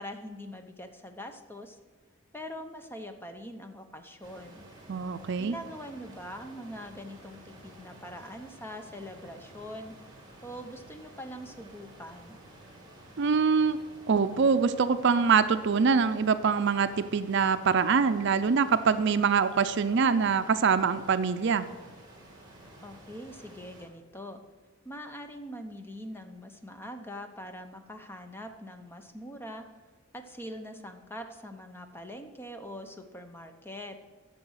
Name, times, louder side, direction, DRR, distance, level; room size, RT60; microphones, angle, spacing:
voice 1, 0.0-1.8 2.3-4.7 5.4-9.9 10.4-12.4 22.8-24.4 24.8-29.6 30.1-34.0, equal, 10° left, 6 dB, 0.8 m, -43 dB
sound 1, 4.2-23.9, right 1 dB, 20° right, 2.5 m, -52 dB
voice 2, 4.9-5.5 13.2-13.8 14.1-21.7, right 5 dB, 60° right, 11 dB, 0.5 m, -24 dB
11.0 x 6.8 x 6.4 m, 1.4 s
head